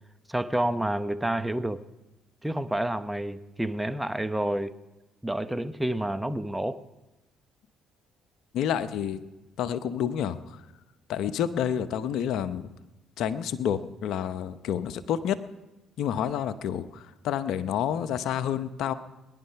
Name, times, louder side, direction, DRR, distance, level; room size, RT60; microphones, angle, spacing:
voice 1, 0.3-1.8 2.4-4.8 5.2-6.8, right 1 dB, 10° right, 0.9 m, -29 dB
voice 2, 8.5-9.2 9.6-10.7 11.1-12.7 13.2-15.4 16.0-18.9, left 9 dB, 70° left, 0.8 m, -29 dB
21.0 x 11.0 x 5.8 m
supercardioid pair, 65°, 0 cm